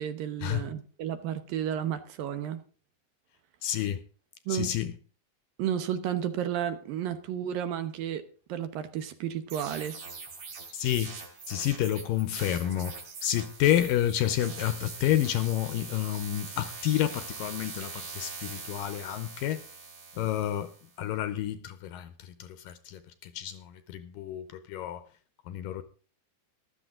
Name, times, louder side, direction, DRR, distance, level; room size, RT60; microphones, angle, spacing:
voice 1, 0.0-2.6 4.5-4.7 5.6-8.2 8.5-10.0, right 10 dB, 70° right, 2.5 m, -32 dB
voice 2, 3.6-4.0 4.5-4.9 10.7-11.2 11.5-19.6 20.2-20.7 21.0-25.0 25.5-25.8, left 12 dB, 75° left, 2.2 m, -29 dB
sound 1, 9.5-20.9, right 4 dB, 45° right, 3.8 m, -43 dB
14.0 x 12.5 x 3.7 m
omnidirectional pair, 4.5 m